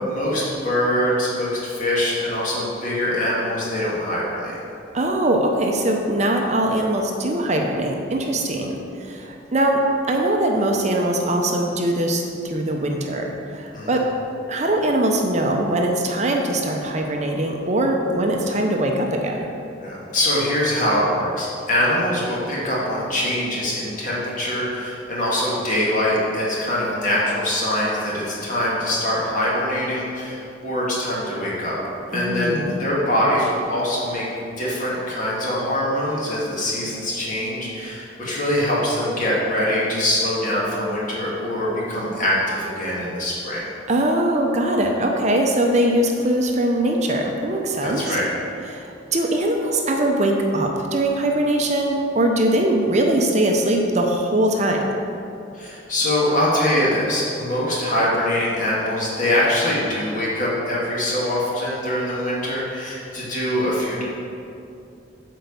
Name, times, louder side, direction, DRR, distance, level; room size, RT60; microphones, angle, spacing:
voice 1, 0.1-4.6 13.7-14.0 19.8-31.7 32.1-34.3 34.6-43.7 47.8-48.3 55.5-64.0, left 1 dB, 45° left, -6 dB, 2.2 m, -23 dB
voice 2, 4.9-14.1 14.5-19.5 32.1-32.8 43.9-48.2 48.7-54.8, right 1 dB, 35° right, 1 dB, 0.7 m, -21 dB
8.0 x 4.6 x 6.8 m, 2.6 s
head